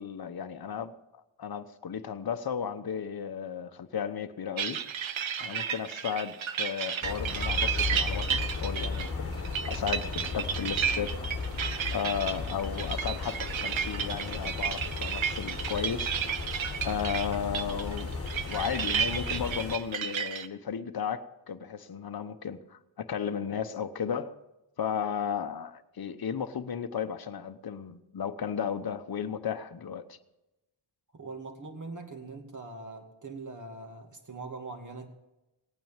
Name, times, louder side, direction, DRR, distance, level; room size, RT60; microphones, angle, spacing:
voice 1, 0.0-4.8 5.4-11.2 11.9-16.1 16.8-18.2 18.5-24.3 24.8-30.2, left 7 dB, 50° left, 1.0 m, -34 dB
sound 1, 4.6-20.5, right 8 dB, 70° right, 0.9 m, -32 dB
sound 2, 7.0-19.7, left 4 dB, 30° left, 1.7 m, -35 dB
voice 2, 31.1-35.1, right 3 dB, 40° right, 2.4 m, -42 dB
18.5 x 9.2 x 7.3 m
wide cardioid pair, 95°, 48 cm